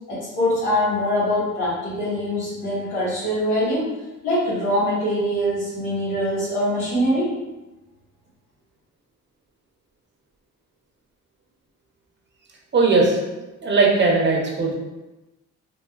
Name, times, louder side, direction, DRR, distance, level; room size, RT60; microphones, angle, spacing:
voice 1, 0.1-3.9 4.2-7.3, equal, 85° left, -10 dB, 1.4 m, -23 dB
voice 2, 12.7-13.2 13.6-14.7, right 3 dB, 35° right, -1 dB, 0.8 m, -18 dB
3.4 x 2.4 x 2.4 m, 1.1 s
cardioid pair, 90°, 30 cm